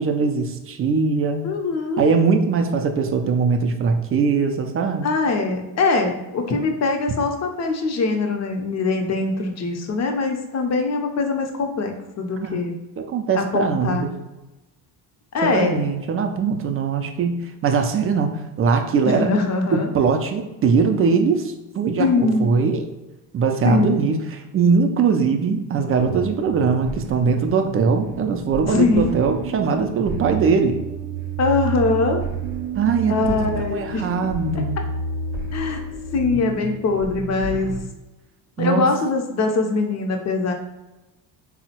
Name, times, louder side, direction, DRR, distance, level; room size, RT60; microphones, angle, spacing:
voice 1, 0.0-1.4 2.0-5.1 12.4-12.6 13.1-14.1 15.4-18.3 18.6-19.3 19.7-22.8 23.3-30.8 32.8-34.8 38.6-38.9, right 5 dB, 30° right, 6 dB, 0.3 m, -21 dB
voice 2, 1.4-2.1 5.0-12.7 13.3-14.1 15.3-15.8 19.0-19.9 22.0-22.5 23.6-24.1 28.7-29.3 31.4-32.2 33.1-34.1 35.5-35.8 36.1-37.8 38.6-40.5, left 3 dB, 35° left, 4 dB, 0.6 m, -22 dB
sound 1, 26.0-37.8, right 4 dB, 60° right, 0.7 m, -30 dB
3.5 x 2.1 x 2.8 m, 1.0 s
hypercardioid pair, 65°, 49 cm